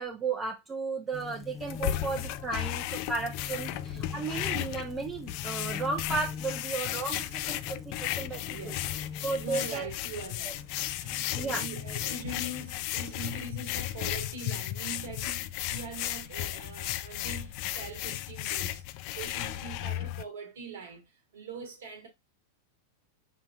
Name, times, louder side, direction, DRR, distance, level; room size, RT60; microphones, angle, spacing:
voice 1, 0.0-8.7 9.2-9.9 11.3-11.6, right 4 dB, 20° right, 0.8 m, -34 dB
sound 1, 1.1-10.0 10.5-12.7, left 6 dB, 20° left, 0.7 m, -43 dB
sound 2, 1.6-20.2, left 14 dB, 50° left, 0.3 m, -35 dB
voice 2, 3.6-4.3 8.2-8.9 9.4-10.6 11.0-18.8 19.1-22.1, right 4 dB, 65° right, 1.2 m, -43 dB
5.6 x 2.7 x 2.4 m
figure-of-eight pair, 90°, 0 cm